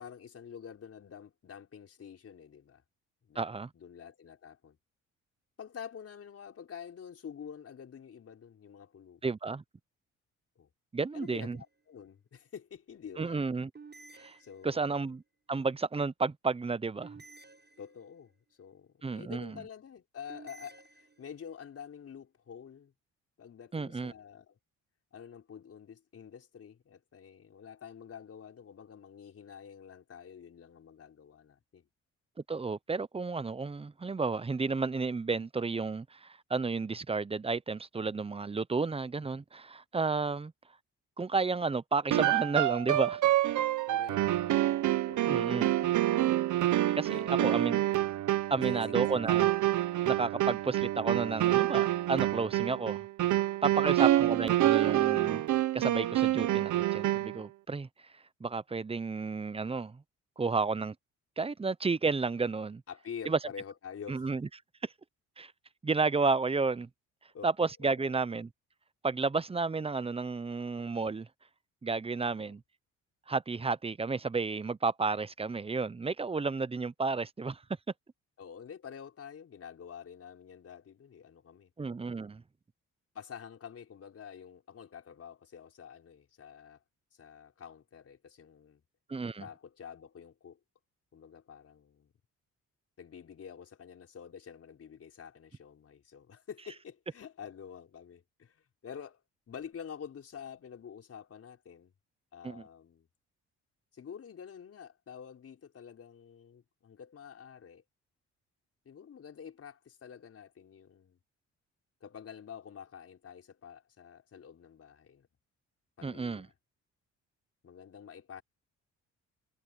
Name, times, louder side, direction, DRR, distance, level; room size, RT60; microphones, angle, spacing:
voice 1, 0.0-2.8 3.2-3.5 3.7-4.8 5.6-9.3 10.6-10.7 11.1-13.4 14.4-14.9 17.8-18.3 18.6-22.9 23.4-24.6 25.1-31.9 43.8-44.8 45.1-46.4 47.1-47.7 48.6-49.3 53.7-54.1 62.9-64.2 67.3-67.5 67.8-68.1 72.2-72.6 78.4-81.7 83.1-86.8 87.1-88.8 89.4-90.6 91.1-92.1 93.0-101.9 102.3-103.1 103.9-107.8 108.9-111.2 112.0-115.3 116.0-116.5 117.6-118.4, left 7 dB, 50° left, 5.4 m, -48 dB
voice 2, 3.4-3.7 9.2-9.6 10.9-11.6 13.2-13.7 14.1-14.4 14.6-15.2 15.5-17.1 19.0-19.6 23.7-24.1 32.5-40.5 41.2-43.2 45.3-45.7 46.9-47.8 48.5-49.5 50.0-53.1 53.6-57.9 58.4-60.0 60.4-60.9 61.4-62.8 63.3-63.4 64.1-64.5 64.8-64.9 65.4-65.5 65.8-66.9 67.4-68.5 69.0-71.3 71.8-72.6 73.3-77.6 81.8-82.4 89.1-89.5 102.4-102.6 116.0-116.5, right 4 dB, 20° right, 0.8 m, -32 dB
sound 1, 11.2-11.8 13.7-15.0 17.0-18.4 20.3-21.6, right 4 dB, 35° right, 7.4 m, -54 dB
sound 2, 42.1-57.4, right 14 dB, 75° right, 1.1 m, -27 dB
cardioid pair, 90°, 30 cm